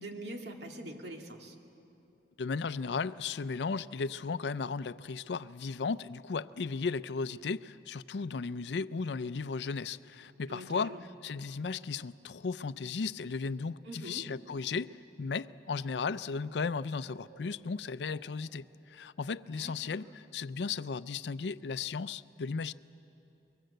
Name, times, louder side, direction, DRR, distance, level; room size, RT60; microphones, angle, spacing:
voice 1, 0.0-1.6 10.5-11.0 13.8-14.2 19.6-20.0, right 1 dB, 70° right, 2 dB, 2.3 m, -44 dB
voice 2, 2.4-11.0 11.2-22.7, left 5 dB, 75° left, 15 dB, 0.5 m, -35 dB
sound 1, 17.1-18.7, right 1 dB, 50° right, 2.5 m, -61 dB
25.0 x 23.0 x 7.9 m, 2.8 s
head